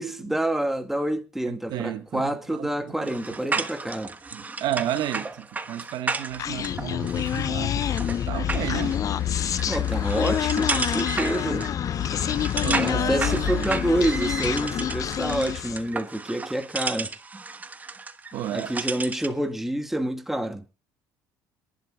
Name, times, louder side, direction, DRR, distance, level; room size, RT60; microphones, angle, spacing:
voice 1, 0.0-4.1 9.7-11.7 12.8-17.1 18.5-20.6, right 1 dB, 5° right, 1.5 m, -28 dB
voice 2, 1.5-3.6 4.3-7.8 8.3-9.0 12.6-13.7 18.3-18.8, right 11 dB, 65° right, 1.4 m, -33 dB
sound 1, 3.0-19.4, right 4 dB, 20° right, 1.3 m, -33 dB
Human voice, 6.4-15.9, left 9 dB, 45° left, 0.7 m, -27 dB
26.0 x 11.5 x 2.3 m
supercardioid pair, 95°, 8 cm